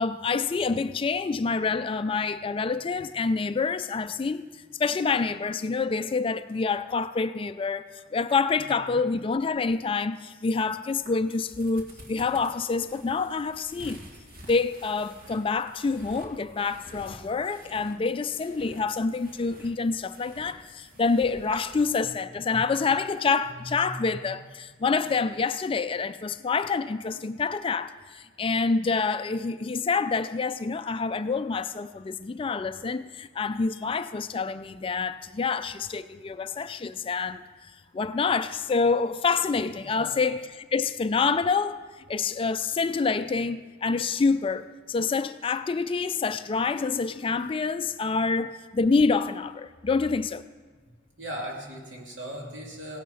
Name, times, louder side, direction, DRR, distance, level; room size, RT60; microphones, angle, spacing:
voice 1, 0.0-4.5 4.8-7.8 8.1-14.0 14.5-37.4 37.9-41.8 42.1-50.4, left 4 dB, 25° left, 0.3 m, -27 dB
voice 2, 8.6-9.0 22.0-22.1 22.6-22.9 23.5-24.4 24.8-24.9 39.8-40.2 50.8-53.0, equal, 65° right, 2.8 m, -40 dB
sound 1, 10.9-21.8, right 1 dB, 50° right, 2.0 m, -49 dB
16.5 x 9.2 x 5.6 m
head